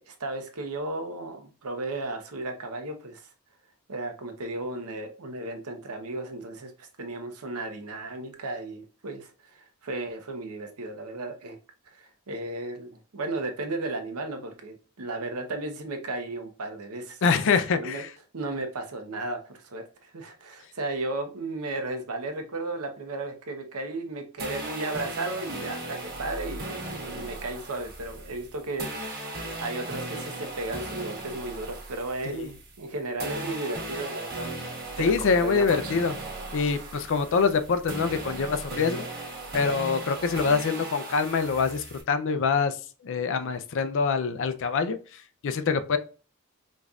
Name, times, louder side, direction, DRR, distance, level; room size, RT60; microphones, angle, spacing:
voice 1, 0.0-3.2 3.9-11.6 12.0-17.2 17.7-18.0 18.3-34.5 35.0-36.0, right 2 dB, 75° right, 0.8 m, -34 dB
voice 2, 17.2-18.1 32.3-32.5 35.0-36.1 36.5-39.0 39.5-42.8 43.0-45.0 45.4-46.0, left 5 dB, 60° left, 0.4 m, -25 dB
sound 1, 24.4-32.9 33.2-42.0, right 2 dB, 40° right, 1.4 m, -37 dB
5.1 x 2.6 x 2.3 m
head